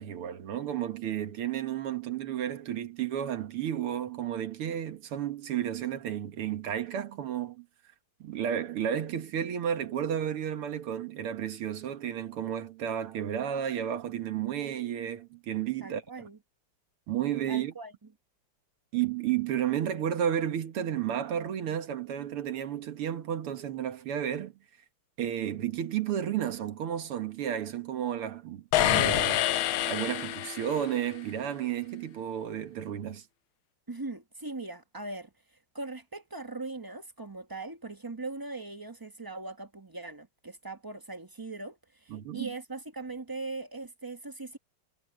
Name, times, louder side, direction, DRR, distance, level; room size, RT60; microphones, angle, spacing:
voice 1, 0.0-7.7 8.2-16.0 17.1-17.7 18.9-24.5 25.2-29.5 29.9-33.2 42.1-42.5, right 10 dB, 90° right, 2.3 m, -32 dB
voice 2, 15.8-16.4 17.5-17.9 33.9-35.3 35.7-44.6, right 3 dB, 30° right, 0.4 m, -40 dB
sound 1, 28.7-31.0, left 14 dB, 75° left, 1.4 m, -27 dB
omnidirectional pair, 2.4 m